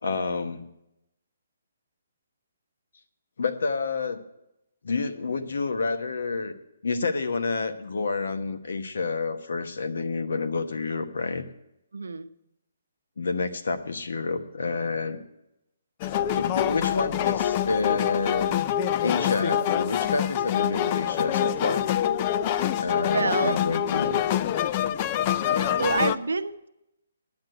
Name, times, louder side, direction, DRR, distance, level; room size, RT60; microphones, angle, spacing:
voice 1, 0.0-0.7 3.4-4.2 4.8-6.5 6.8-11.4 13.2-15.2 16.3-18.6 19.0-21.9 22.8-24.2 25.5-25.8, left 4 dB, 75° left, 8 dB, 1.1 m, -29 dB
voice 2, 11.9-12.3 23.1-23.6 25.8-26.7, right 4 dB, 85° right, 10 dB, 0.7 m, -27 dB
sound 1, 16.0-26.2, left 10 dB, 30° left, 0.4 m, -25 dB
9.7 x 8.0 x 9.3 m, 0.84 s
hypercardioid pair, 150°, 0 cm